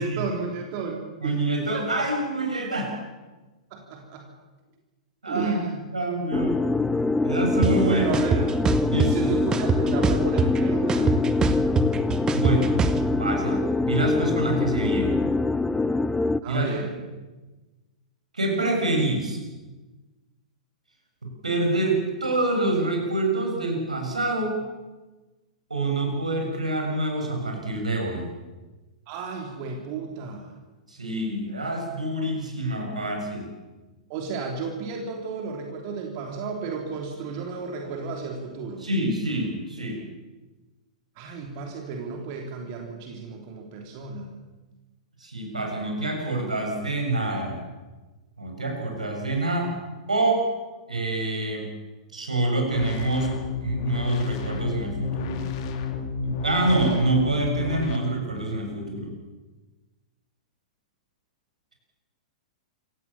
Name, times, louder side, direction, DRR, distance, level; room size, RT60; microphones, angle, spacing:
voice 1, 0.0-1.3 1.7-1.9 3.7-4.3 5.2-5.9 7.9-8.5 9.1-11.3 16.4-16.9 29.1-30.5 34.1-38.9 41.1-44.3, right 5 dB, 45° right, 2 dB, 3.3 m, -33 dB
voice 2, 1.2-2.9 5.2-5.5 5.9-6.6 7.2-8.1 8.9-9.3 12.3-12.7 13.2-15.2 16.5-16.7 18.3-19.4 21.4-24.6 25.7-28.3 30.9-33.5 38.8-40.0 45.2-47.6 48.4-49.7 50.1-50.5 50.9-51.7 52.1-53.3 53.6-55.4 56.2-59.1, right 2 dB, 80° right, 2 dB, 7.2 m, -26 dB
sound 1, 6.3-16.4, left 3 dB, 10° left, 0.7 m, -24 dB
sound 2, 7.6-7.7 8.1-9.1 9.5-10.6 10.9-13.0, right 5 dB, 20° right, 1.9 m, -22 dB
sound 3, 52.7-58.0, left 5 dB, 45° left, 3.1 m, -31 dB
27.5 x 16.5 x 7.4 m, 1.2 s
figure-of-eight pair, 105°, 4 cm